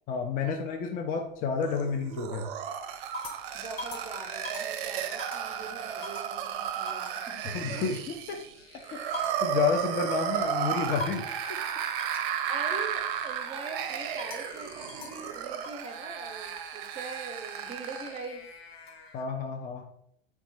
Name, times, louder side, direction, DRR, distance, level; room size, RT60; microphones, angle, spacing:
voice 1, 0.1-2.5 7.5-8.4 8.9-11.6 19.1-19.8, left 6 dB, 30° left, 3 dB, 0.5 m, -31 dB
sound 1, 0.7-1.4 1.9-2.3 2.8-5.6 6.0-6.4 6.9-7.2 8.4-10.5 11.0-11.4 12.0-12.3 13.8-15.9 17.2-19.2, left 2 dB, 85° left, 0.7 m, -44 dB
sound 2, 1.6-18.2, right 9 dB, 60° right, 0.5 m, -34 dB
voice 2, 3.5-7.9 12.5-18.5, right 3 dB, 20° right, 4 dB, 0.7 m, -42 dB
3.8 x 2.3 x 4.3 m, 0.70 s
hypercardioid pair, 85°, 30 cm